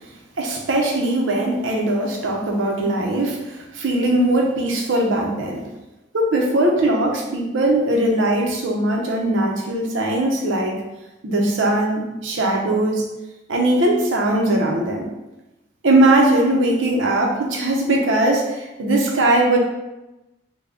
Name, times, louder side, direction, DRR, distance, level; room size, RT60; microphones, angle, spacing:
voice 1, 0.4-3.4 3.7-5.6 6.1-10.7 11.2-13.0 13.5-15.1 15.8-19.6, right 1 dB, 85° right, 0 dB, 0.6 m, -20 dB
3.4 x 2.2 x 3.7 m, 0.99 s
head